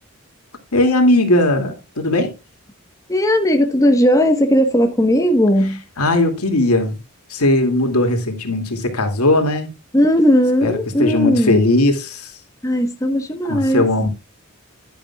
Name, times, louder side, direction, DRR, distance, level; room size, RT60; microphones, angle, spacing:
voice 1, 0.7-2.3 6.0-7.0 7.3-9.7 10.6-12.3 13.5-14.1, left 1 dB, 85° left, 2.5 m, -18 dB
voice 2, 3.1-5.8 9.9-11.6 12.6-13.8, equal, 15° left, 1.2 m, -16 dB
11.0 x 10.5 x 2.3 m
head